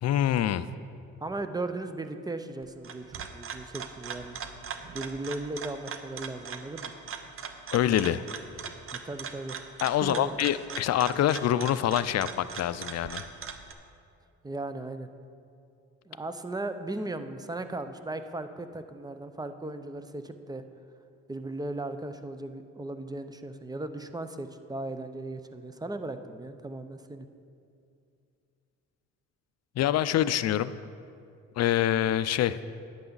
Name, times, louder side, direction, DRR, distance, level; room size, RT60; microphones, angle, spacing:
voice 1, 0.0-0.7 7.7-8.2 9.8-13.3 29.8-30.7 31.6-32.6, left 11 dB, 60° left, 15 dB, 0.4 m, -25 dB
voice 2, 1.2-4.4 4.9-6.9 9.0-9.6 10.0-10.5 14.4-15.1 16.1-20.6 21.3-27.3, right 2 dB, 15° right, 9 dB, 0.6 m, -37 dB
sound 1, 2.6-13.7, right 6 dB, 45° right, 0.8 m, -40 dB
11.0 x 9.0 x 4.0 m, 2.5 s
cardioid pair, 90°, 30 cm